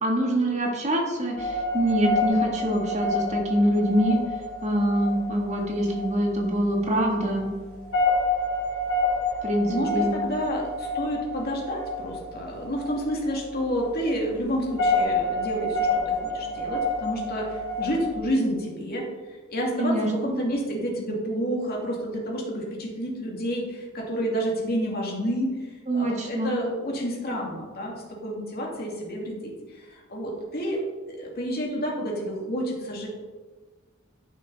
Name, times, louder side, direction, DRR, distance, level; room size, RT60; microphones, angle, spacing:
voice 1, 0.0-4.2 4.6-7.5 9.4-10.1 19.8-20.1 25.9-26.6, right 1 dB, 35° right, 0 dB, 1.7 m, -24 dB
sound 1, 1.4-18.2, left 2 dB, 75° left, 3.0 m, -29 dB
voice 2, 9.7-19.1 19.5-25.6 25.9-30.8 31.1-33.1, equal, 45° left, -1 dB, 2.4 m, -29 dB
13.5 x 6.2 x 4.1 m, 1.3 s
head